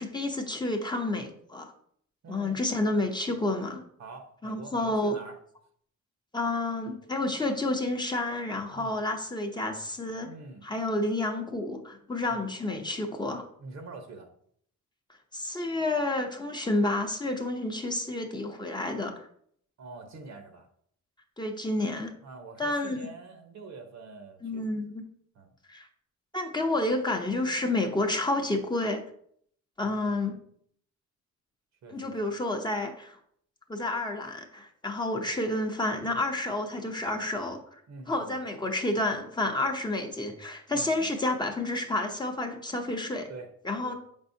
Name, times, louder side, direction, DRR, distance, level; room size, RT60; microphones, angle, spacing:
voice 1, 0.0-1.7 2.3-3.8 4.4-5.2 6.3-10.3 10.6-13.5 15.3-19.1 21.4-22.1 22.6-23.0 24.4-25.0 25.7-25.9 26.3-29.0 29.8-30.4 31.9-33.2 33.7-37.8 38.1-43.3 43.6-43.9, left 2 dB, 15° left, 3 dB, 0.7 m, -30 dB
voice 2, 2.2-2.6 4.0-5.4 8.7-9.1 10.2-10.6 12.3-12.4 13.6-14.3 19.8-20.7 22.2-24.7 25.3-25.5 29.8-30.2 31.8-32.3 35.1-35.3 37.9-38.4 40.7-41.1 43.3-43.5 43.8-43.9, right 3 dB, 60° right, 6 dB, 1.1 m, -45 dB
6.7 x 5.3 x 2.7 m, 0.66 s
cardioid pair, 90°, 30 cm